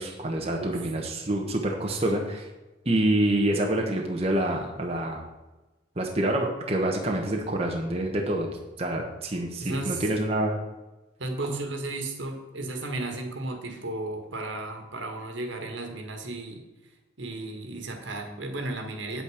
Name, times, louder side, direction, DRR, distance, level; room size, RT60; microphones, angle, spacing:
voice 1, 0.0-2.5 2.8-5.2 6.0-8.5 8.8-10.6 11.5-11.6, right 1 dB, 30° right, 0 dB, 1.1 m, -27 dB
voice 2, 9.6-10.1 11.2-16.6 17.2-19.2, right 2 dB, 75° right, 4 dB, 1.8 m, -34 dB
8.8 x 8.4 x 5.0 m, 1.1 s
head